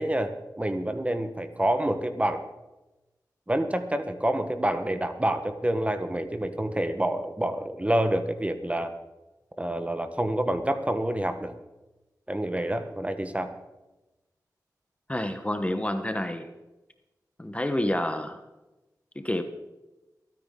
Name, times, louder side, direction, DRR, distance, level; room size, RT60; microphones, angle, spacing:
voice 1, 0.0-2.4 3.5-8.9 9.6-11.5 12.3-13.5, right 1 dB, 20° right, 8 dB, 1.2 m, -27 dB
voice 2, 15.1-16.5 17.4-18.4 19.1-19.4, left 1 dB, 20° left, 8 dB, 1.1 m, -28 dB
23.5 x 9.5 x 3.8 m, 1.1 s
cardioid pair, 55°, 7 cm